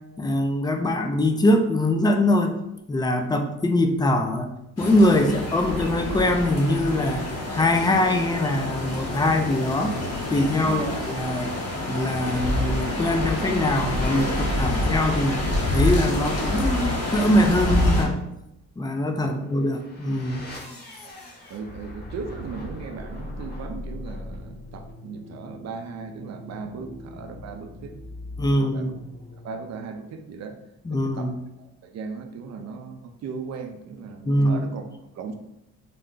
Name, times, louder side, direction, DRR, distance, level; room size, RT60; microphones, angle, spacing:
voice 1, 0.2-2.6 2.9-7.3 7.5-9.9 10.3-11.5 11.9-15.4 15.7-18.2 18.8-20.4 28.4-28.9 30.8-31.3 34.2-34.6, left 1 dB, 15° left, 5 dB, 0.4 m, -22 dB
sound 1, 4.8-18.0, left 1 dB, 55° left, 1.1 m, -27 dB
voice 2, 10.6-11.0 19.2-19.4 21.0-21.1 21.5-28.0 28.4-28.9 29.4-30.6 30.9-31.3 31.6-35.3, right 5 dB, 60° right, 6 dB, 0.6 m, -37 dB
sound 2, 19.3-30.1, left 1 dB, 35° left, 1.0 m, -40 dB
3.8 x 2.2 x 3.8 m, 0.86 s
cardioid pair, 90°, 30 cm